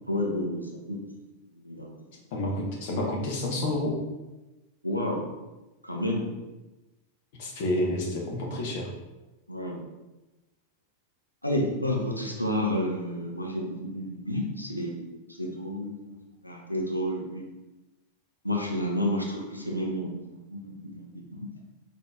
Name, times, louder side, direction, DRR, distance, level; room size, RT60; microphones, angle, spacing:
voice 1, 0.1-1.0 1.6-1.9 4.8-5.2 5.8-6.3 9.5-9.8 11.4-16.2 16.4-17.4 18.4-21.5, left 1 dB, 90° left, -2 dB, 0.7 m, -30 dB
voice 2, 2.1-4.0 7.4-8.9, left 1 dB, 50° left, -1 dB, 1.0 m, -29 dB
4.2 x 2.8 x 3.4 m, 1.1 s
figure-of-eight pair, 90°, 0 cm